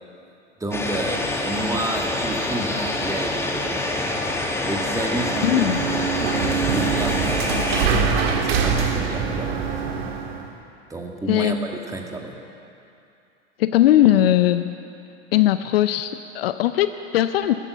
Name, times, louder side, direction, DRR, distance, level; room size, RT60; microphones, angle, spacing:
voice 1, 0.6-4.1 4.6-5.7 6.2-9.7 10.9-11.6 11.9-12.3, right 2 dB, 10° right, 2 dB, 1.8 m, -31 dB
sound 1, 0.7-7.9, left 2 dB, 5° left, 1.4 m, -26 dB
sound 2, 5.0-10.5, right 6 dB, 55° right, 2.0 m, -24 dB
voice 2, 5.4-5.8 11.3-11.6 13.6-14.7 15.3-17.5, left 13 dB, 55° left, 11 dB, 0.7 m, -19 dB
14.0 x 14.0 x 6.9 m, 2.6 s
figure-of-eight pair, 90°, 35 cm